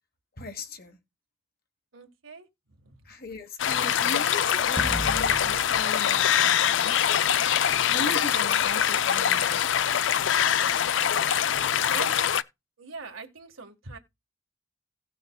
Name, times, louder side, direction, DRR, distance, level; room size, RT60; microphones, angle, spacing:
voice 1, 0.4-1.0 3.0-7.1 7.9-9.7, left 2 dB, 45° left, 1.4 m, -38 dB
voice 2, 1.9-2.5 2.8-3.0 11.9-12.3 12.8-14.0, right 4 dB, 85° right, 1.7 m, -41 dB
sound 1, 3.6-12.4, left 9 dB, 65° left, 0.4 m, -24 dB
sound 2, 4.8-7.2, equal, 25° right, 1.2 m, -37 dB
17.0 x 6.6 x 2.3 m
head